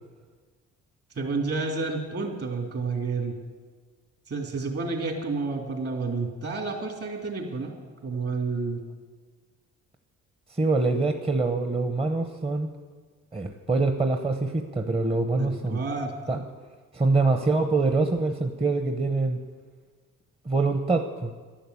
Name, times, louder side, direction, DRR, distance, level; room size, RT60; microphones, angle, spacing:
voice 1, 1.2-3.4 4.3-7.7 8.0-8.8 15.4-16.1, right 4 dB, 50° right, 2 dB, 3.4 m, -30 dB
voice 2, 10.5-12.7 13.3-15.8 16.3-16.4 16.9-19.4 20.4-21.3, right 3 dB, 20° right, 5 dB, 0.9 m, -25 dB
11.5 x 11.5 x 8.4 m, 1.5 s
cardioid pair, 90°, 30 cm